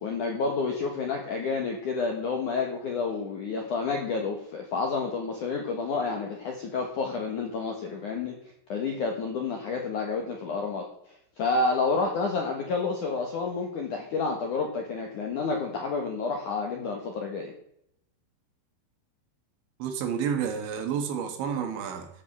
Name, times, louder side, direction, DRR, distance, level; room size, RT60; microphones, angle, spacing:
voice 1, 0.0-8.4 8.7-10.9 11.4-17.5, left 4 dB, 65° left, 2 dB, 2.0 m, -29 dB
voice 2, 19.8-22.1, right 7 dB, 70° right, 6 dB, 3.6 m, -30 dB
13.5 x 7.1 x 7.2 m, 0.72 s
omnidirectional pair, 5.8 m